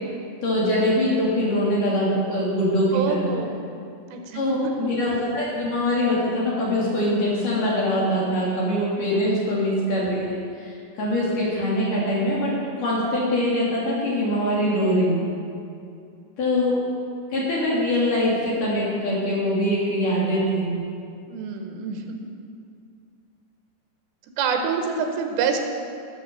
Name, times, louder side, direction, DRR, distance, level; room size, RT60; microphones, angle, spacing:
voice 1, 0.4-3.3 4.3-12.5 12.8-15.2 16.4-16.8 17.3-20.7, left 1 dB, 50° left, -6 dB, 3.0 m, -23 dB
voice 2, 2.9-3.5 4.1-4.7 9.2-9.5 21.3-22.2 24.4-25.6, right 6 dB, 85° right, 4 dB, 3.6 m, -27 dB
12.5 x 7.6 x 6.4 m, 2.5 s
omnidirectional pair, 5.7 m